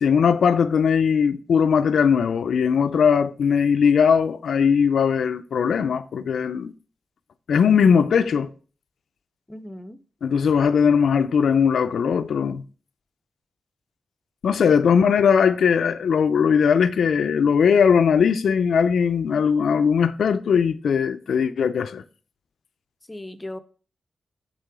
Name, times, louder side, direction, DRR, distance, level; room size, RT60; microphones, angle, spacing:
voice 1, 0.0-6.7 7.5-8.5 10.2-12.6 14.4-22.0, left 6 dB, 85° left, 0.4 m, -19 dB
voice 2, 9.5-10.0 14.7-14.8 23.1-23.6, left 1 dB, 20° left, 0.6 m, -37 dB
6.6 x 3.8 x 4.8 m
cardioid pair, 70°, 0 cm